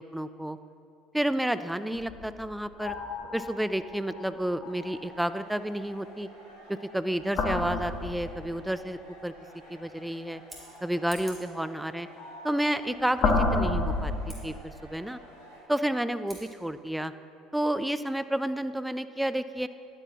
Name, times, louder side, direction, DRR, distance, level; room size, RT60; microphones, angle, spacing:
voice 1, 0.1-0.6 1.1-3.0 3.3-6.3 6.7-9.3 9.7-10.4 10.8-12.1 12.4-14.1 14.4-15.2 15.7-17.1 17.5-19.7, right 1 dB, 5° right, 12 dB, 0.3 m, -30 dB
sound 1, 1.9-5.4 7.2-8.8 12.2-14.6, left 3 dB, 45° left, 1.2 m, -31 dB
sound 2, 4.6-15.6, equal, 80° left, 2.1 m, -51 dB
Scissors, 10.3-11.6 14.2-14.4 16.2-16.5, right 1 dB, 20° right, 2.4 m, -48 dB
10.5 x 9.7 x 2.8 m, 2.4 s
figure-of-eight pair, 60°, 0 cm